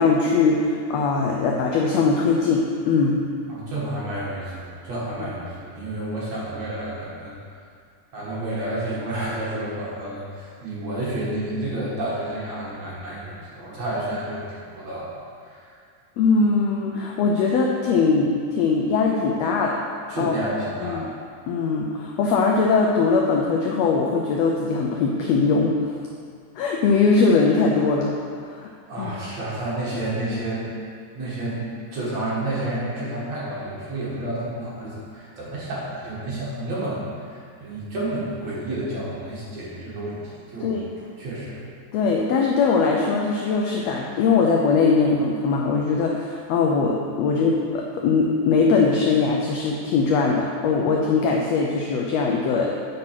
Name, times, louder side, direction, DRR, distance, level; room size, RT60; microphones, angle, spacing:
voice 1, 0.0-3.2 5.2-5.3 16.2-19.8 20.2-20.3 20.8-21.1 21.5-26.0 26.5-28.1 28.4-28.7 29.0-29.1 40.6-40.9 41.9-52.8, left 4 dB, 90° left, -1 dB, 1.4 m, -21 dB
voice 2, 3.5-7.3 8.1-15.1 15.4-15.7 20.1-21.1 28.9-30.7 31.1-37.3 37.6-40.2 40.5-40.8 41.2-41.6, right 1 dB, 60° right, -7 dB, 2.6 m, -30 dB
7.7 x 3.9 x 5.7 m, 2.1 s
omnidirectional pair, 3.6 m